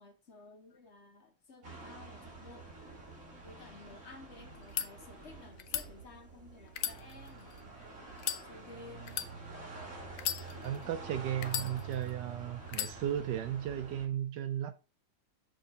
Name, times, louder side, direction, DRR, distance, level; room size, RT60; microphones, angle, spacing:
voice 1, 0.0-2.7 3.4-9.2, left 3 dB, 40° left, 1.1 m, -54 dB
sound 1, 1.6-14.1, right 4 dB, 40° right, 2.3 m, -48 dB
sound 2, 4.5-4.9 5.6-5.9 6.7-7.6 8.2-8.4 9.1-9.3 10.1-10.8 11.4-12.1 12.7-12.9, left 11 dB, 80° left, 1.5 m, -36 dB
voice 2, 10.6-14.7, right 10 dB, 75° right, 1.0 m, -35 dB
6.4 x 3.6 x 5.2 m
omnidirectional pair, 2.2 m